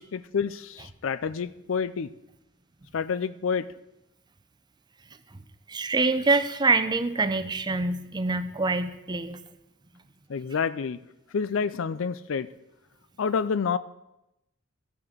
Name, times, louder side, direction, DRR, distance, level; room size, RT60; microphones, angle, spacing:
voice 1, 0.0-2.1 2.9-3.7 10.3-11.0 11.3-12.5 13.2-13.8, left 6 dB, 70° left, 16 dB, 0.4 m, -28 dB
voice 2, 5.7-9.4, right 3 dB, 20° right, 10 dB, 0.6 m, -25 dB
13.5 x 6.0 x 6.7 m, 0.89 s
head